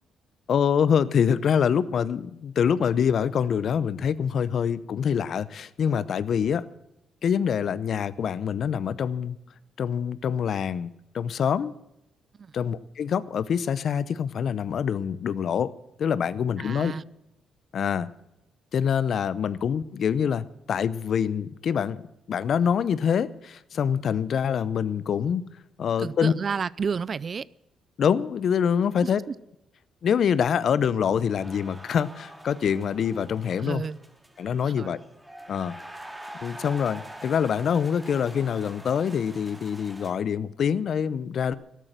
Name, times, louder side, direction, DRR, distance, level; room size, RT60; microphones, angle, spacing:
voice 1, 0.5-6.6 7.2-9.4 9.8-11.7 12.5-15.7 16.0-16.9 17.7-18.1 18.7-22.0 22.3-25.4 25.8-26.3 28.0-29.2 30.0-33.8 34.4-35.0 35.5-35.8 36.4-41.5, left 7 dB, 60° left, 0.7 m, -25 dB
voice 2, 16.6-17.0 26.0-27.5 29.0-29.1 33.6-34.0 34.6-34.9, right 6 dB, 45° right, 0.5 m, -31 dB
sound 1, 31.4-40.1, right 1 dB, 10° right, 2.1 m, -45 dB
13.0 x 12.0 x 7.6 m
cardioid pair, 90°, 0 cm